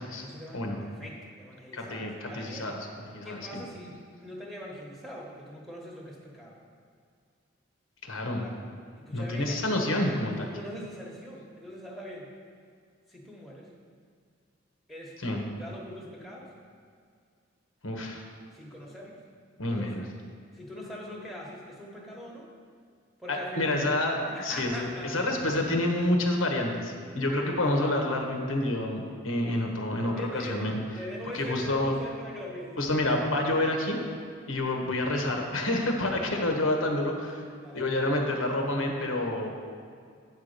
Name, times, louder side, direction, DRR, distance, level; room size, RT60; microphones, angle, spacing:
voice 1, 0.2-2.8 3.2-6.6 8.1-8.5 9.0-9.8 10.3-12.3 13.1-13.7 14.9-15.2 15.6-16.5 18.5-19.2 19.7-19.9 20.5-22.5 23.2-23.9 24.3-25.2 29.4-29.6 30.2-30.6 31.0-32.9 34.8-34.9 36.0-36.5 37.6-38.1, equal, ahead, -3 dB, 1.1 m, -42 dB
voice 2, 1.7-2.8 3.1-3.6 8.0-8.4 9.1-10.5 15.2-15.4 17.8-18.2 19.6-20.1 23.3-30.8 31.3-31.9 32.8-34.0 34.5-37.4 37.7-39.5, left 1 dB, 90° left, 2 dB, 1.3 m, -28 dB
9.2 x 4.7 x 6.6 m, 2.2 s
head